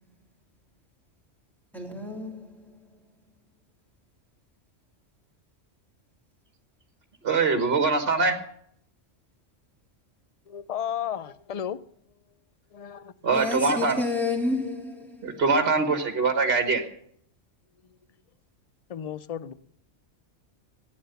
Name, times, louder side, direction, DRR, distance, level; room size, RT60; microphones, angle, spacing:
voice 1, 1.7-2.9 13.3-15.4, left 3 dB, ahead, 3.2 m, -31 dB
voice 2, 7.2-8.4 13.2-14.0 15.2-16.8, right 4 dB, 55° right, 1.6 m, -23 dB
voice 3, 10.5-11.8 12.7-13.1 18.9-19.5, left 9 dB, 45° left, 0.5 m, -33 dB
15.5 x 9.7 x 6.8 m
omnidirectional pair, 1.3 m